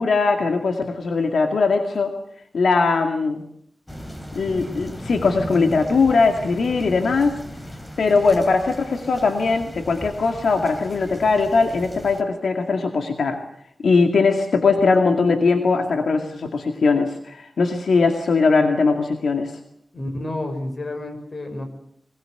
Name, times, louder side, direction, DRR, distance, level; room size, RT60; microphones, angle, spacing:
voice 1, 0.0-2.2 2.5-3.4 4.3-7.4 8.0-13.4 13.8-19.6, left 4 dB, 85° left, 5 dB, 2.2 m, -20 dB
sound 1, 3.9-12.2, equal, 15° left, 3.3 m, -36 dB
voice 2, 19.9-21.6, left 1 dB, 40° left, 6 dB, 6.0 m, -30 dB
22.5 x 21.5 x 7.9 m, 0.70 s
wide cardioid pair, 110°, 0 cm